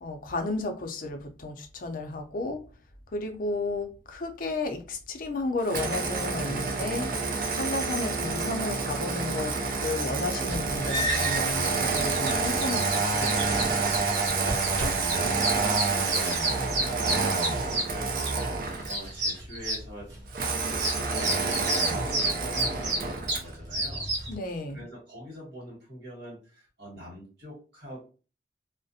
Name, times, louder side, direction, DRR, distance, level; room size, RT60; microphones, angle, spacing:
voice 1, 0.0-2.7 3.1-7.1 7.5-14.4 24.3-24.8, left 2 dB, 50° left, 0.5 m, -33 dB
Engine starting, 5.7-19.1 20.3-23.5, right 4 dB, 50° right, 0.4 m, -28 dB
sound 1, 10.5-24.3, right 1 dB, 90° right, 0.9 m, -31 dB
voice 2, 15.0-17.2 17.9-20.1 20.6-24.1 24.7-28.1, equal, 75° right, 1.3 m, -43 dB
2.4 x 2.1 x 2.6 m
head